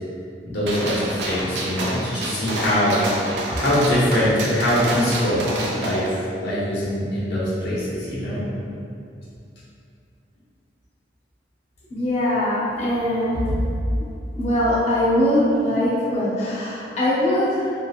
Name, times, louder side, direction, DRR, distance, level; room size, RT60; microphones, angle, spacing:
voice 1, 0.4-3.0 3.5-8.4, equal, 75° left, -8 dB, 0.7 m, -23 dB
Gunshot gunfire, 0.7-6.1, right 1 dB, 75° right, 0.4 m, -28 dB
voice 2, 11.9-13.6 14.4-17.7, left 1 dB, 40° left, -10 dB, 0.6 m, -21 dB
2.7 x 2.0 x 2.3 m, 2.5 s
head